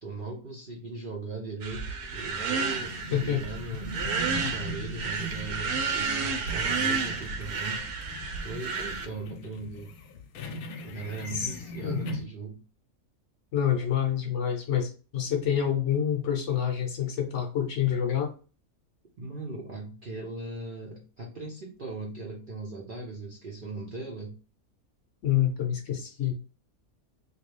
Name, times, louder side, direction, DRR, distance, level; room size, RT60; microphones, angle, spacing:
voice 1, 0.0-4.0 4.2-7.8 8.4-9.9 10.8-12.6 19.2-24.4, right 3 dB, 55° right, -1 dB, 0.6 m, -39 dB
sound 1, 1.6-9.1, right 4 dB, 85° right, 1.1 m, -31 dB
sound 2, 2.0-12.2, left 1 dB, 85° left, 1.1 m, -40 dB
voice 2, 3.1-3.4 11.3-11.5 11.8-12.0 13.5-18.3 25.2-26.3, left 9 dB, 60° left, 3 dB, 0.9 m, -27 dB
3.1 x 2.5 x 3.2 m, 0.36 s
omnidirectional pair, 1.5 m